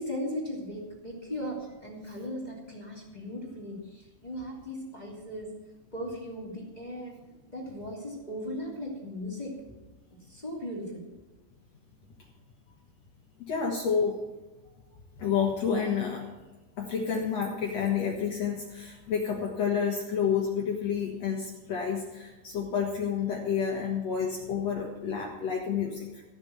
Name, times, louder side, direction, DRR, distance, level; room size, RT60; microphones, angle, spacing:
voice 1, 0.0-5.6 5.9-7.2 7.5-9.8 10.1-11.0, equal, 15° left, -3 dB, 1.8 m, -37 dB
voice 2, 13.4-14.2 15.2-16.3 16.8-26.2, left 7 dB, 65° left, 0 dB, 1.6 m, -29 dB
16.0 x 7.1 x 7.2 m, 1.2 s
omnidirectional pair, 5.1 m